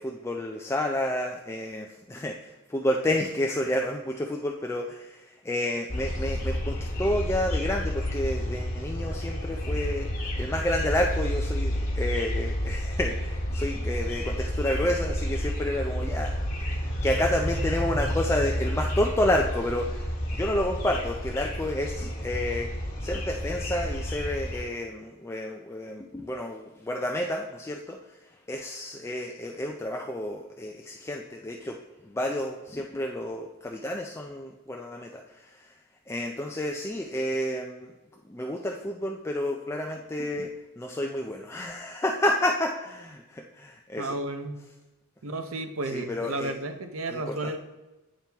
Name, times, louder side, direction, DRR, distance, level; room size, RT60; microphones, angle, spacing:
voice 1, 0.0-10.1 10.4-16.8 17.0-22.7 23.0-28.0 28.5-31.8 32.1-35.7 36.1-37.9 38.3-44.1 45.9-46.5 47.1-47.5, left 1 dB, 10° left, 1 dB, 0.3 m, -30 dB
sound 1, 5.9-24.6, equal, 40° left, 1.5 m, -30 dB
voice 2, 44.0-44.6 45.2-47.6, right 2 dB, 65° right, 7 dB, 0.7 m, -32 dB
8.8 x 4.4 x 3.4 m, 1.1 s
head